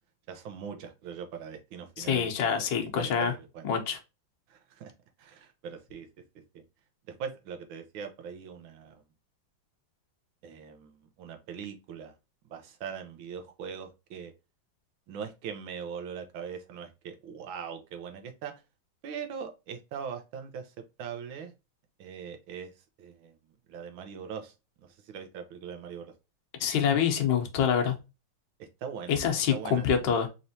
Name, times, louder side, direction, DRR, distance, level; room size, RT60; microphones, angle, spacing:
voice 1, 0.3-2.7 3.0-3.7 4.5-4.9 5.2-6.1 6.5-6.6 7.1-9.0 10.4-12.2 12.4-14.3 15.1-18.5 19.0-20.7 21.0-21.5 22.0-22.7 23.0-23.4 23.7-26.1 28.6-29.2 29.5-29.9, right 7 dB, 70° right, 1.5 m, -41 dB
voice 2, 2.0-3.3 3.6-4.0 26.6-27.9 29.1-30.3, left 7 dB, 65° left, 1.4 m, -26 dB
4.2 x 3.1 x 2.6 m
omnidirectional pair, 2.3 m